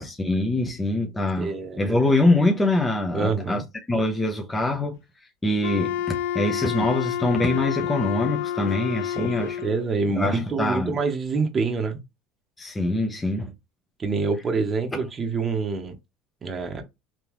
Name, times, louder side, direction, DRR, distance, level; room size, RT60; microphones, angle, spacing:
voice 1, 0.0-3.6 3.9-5.0 5.4-9.6 10.1-10.9 12.6-13.5, left 2 dB, 15° left, 0.7 m, -24 dB
voice 2, 1.4-2.0 3.1-3.6 9.1-12.0 14.0-15.9 16.4-16.8, right 4 dB, 30° right, 0.8 m, -26 dB
Wind instrument woodwind instrument, 5.6-9.9, left 10 dB, 75° left, 0.4 m, -29 dB
3.5 x 2.7 x 3.0 m
supercardioid pair, 100°, 0 cm